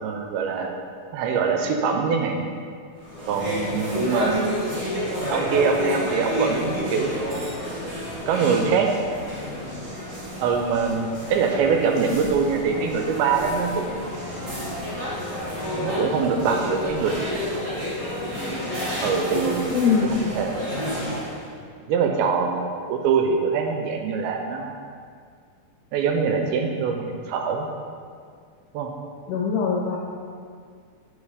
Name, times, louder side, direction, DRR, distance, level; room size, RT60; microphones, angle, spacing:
voice 1, 0.0-0.8 1.1-2.4 3.3-4.7 5.3-7.2 8.3-8.9 10.4-13.9 15.7-17.3 19.0-19.9 20.2-20.5 21.9-24.8 25.9-27.7 28.7-28.9, right 5 dB, 80° right, 3 dB, 2.4 m, -23 dB
sound 1, 3.0-21.4, left 1 dB, 40° right, 1.7 m, -30 dB
voice 2, 19.7-20.0 29.3-30.0, left 6 dB, 80° left, -2 dB, 1.8 m, -22 dB
8.4 x 5.2 x 4.9 m, 2.2 s
omnidirectional pair, 4.6 m